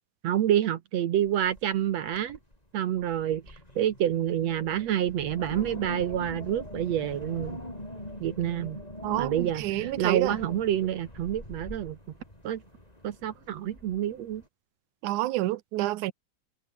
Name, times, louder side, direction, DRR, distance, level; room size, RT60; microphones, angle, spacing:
voice 1, 0.2-2.4 2.7-7.6 8.2-8.8 9.2-12.0 12.4-12.6 13.0-14.4, right 11 dB, 65° right, 2.2 m, -28 dB
Wind, 1.3-1.7 2.1-2.6 3.0-14.4, left 1 dB, 10° left, 7.2 m, -42 dB
voice 2, 9.0-10.4 15.0-16.1, right 16 dB, 85° right, 2.3 m, -29 dB
omnidirectional pair, 3.4 m